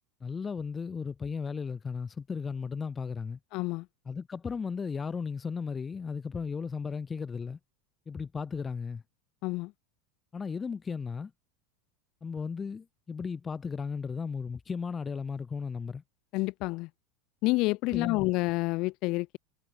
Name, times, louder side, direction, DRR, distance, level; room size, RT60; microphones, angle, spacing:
voice 1, 0.2-3.4 4.1-7.6 8.1-9.0 10.3-11.3 12.2-16.0 17.9-18.3, left 5 dB, 15° left, 0.6 m, -35 dB
voice 2, 3.5-3.9 9.4-9.7 16.3-16.9 17.4-19.4, left 23 dB, 50° left, 0.9 m, -28 dB
supercardioid pair, 150°, 0 cm